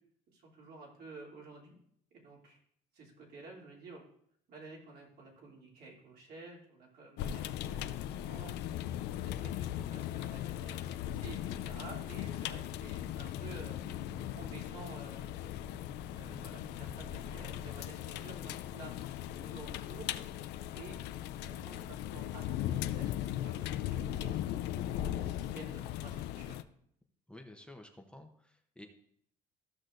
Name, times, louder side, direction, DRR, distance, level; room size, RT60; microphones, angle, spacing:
voice 1, 0.3-1.8 2.1-2.6 2.9-4.0 4.5-8.0 8.2-8.7 9.1-13.8 14.3-15.5 16.1-18.9 19.4-20.1 20.7-21.0 21.3-24.4 24.8-26.6, right 3 dB, 65° right, -3 dB, 3.0 m, -52 dB
sound 1, 7.2-26.6, left 12 dB, 85° left, 0.4 m, -38 dB
sound 2, 15.3-17.5 18.2-18.3, left 1 dB, 25° right, 1.6 m, -54 dB
voice 2, 27.3-28.9, left 1 dB, 5° left, 3 dB, 0.8 m, -52 dB
14.5 x 6.1 x 2.6 m, 0.67 s
cardioid pair, 110°, 17 cm